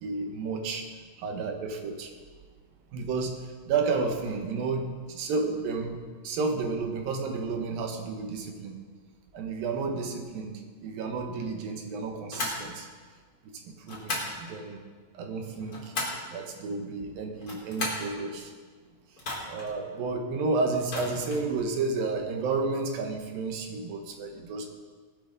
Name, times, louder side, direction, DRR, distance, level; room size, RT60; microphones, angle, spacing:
voice 1, 0.0-0.9 1.2-2.1 2.9-6.0 6.2-8.8 9.3-12.9 13.4-14.8 15.1-15.9 16.3-18.5 19.5-24.7, right 4 dB, 85° right, 4 dB, 3.1 m, -31 dB
sound 1, 12.3-12.6 13.9-14.4 15.4-16.3 17.3-18.1 19.2-19.7 20.8-21.5, left 2 dB, 25° left, 3.1 m, -34 dB
18.5 x 12.0 x 4.0 m, 1.5 s
omnidirectional pair, 4.0 m